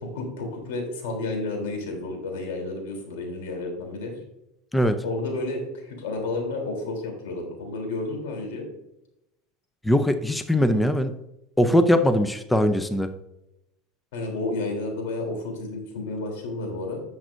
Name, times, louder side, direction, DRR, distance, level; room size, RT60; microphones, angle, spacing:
voice 1, 0.1-4.1 5.0-8.7 14.1-17.0, left 2 dB, 85° left, 3 dB, 3.2 m, -31 dB
voice 2, 4.7-5.0 9.8-11.2 11.6-13.1, equal, 5° left, 9 dB, 0.6 m, -21 dB
10.5 x 7.3 x 2.6 m, 0.85 s
supercardioid pair, 125°, 0 cm